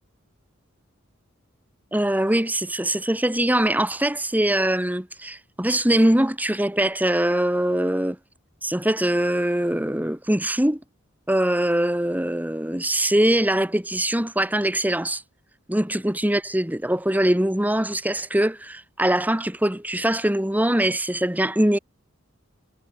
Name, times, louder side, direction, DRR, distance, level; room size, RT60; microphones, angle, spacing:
voice 1, 1.9-8.2 8.6-10.8 11.3-15.2 15.7-21.8, right 1 dB, 10° right, 1.8 m, -22 dB
head